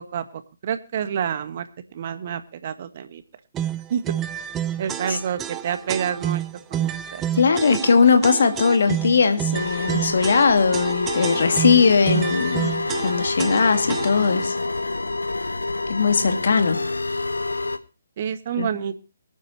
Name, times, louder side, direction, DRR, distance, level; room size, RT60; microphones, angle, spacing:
voice 1, 0.0-1.7 1.9-3.2 3.9-4.0 4.8-6.4 6.7-7.2 18.2-19.0, right 8 dB, 45° right, 10 dB, 1.6 m, -28 dB
sound 1, 3.5-14.4, right 10 dB, 15° right, 0.7 m, -29 dB
voice 2, 7.3-12.7 13.0-14.6 15.9-16.8 18.6-18.7, left 5 dB, 60° left, 7 dB, 2.2 m, -19 dB
sound 2, 9.5-17.8, left 3 dB, 80° left, 1.3 m, -27 dB
24.0 x 9.3 x 3.0 m, 0.32 s
figure-of-eight pair, 140°, 0 cm